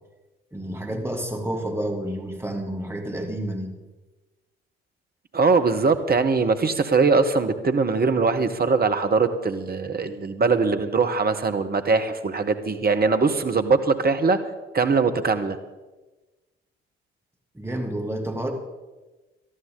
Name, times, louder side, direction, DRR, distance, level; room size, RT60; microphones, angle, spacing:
voice 1, 0.5-3.7 17.5-18.5, right 1 dB, 10° right, 2 dB, 2.7 m, -29 dB
voice 2, 5.3-14.4 14.7-15.6, right 4 dB, 30° right, 8 dB, 1.4 m, -21 dB
19.0 x 12.5 x 4.0 m, 1.2 s
figure-of-eight pair, 45°, 29 cm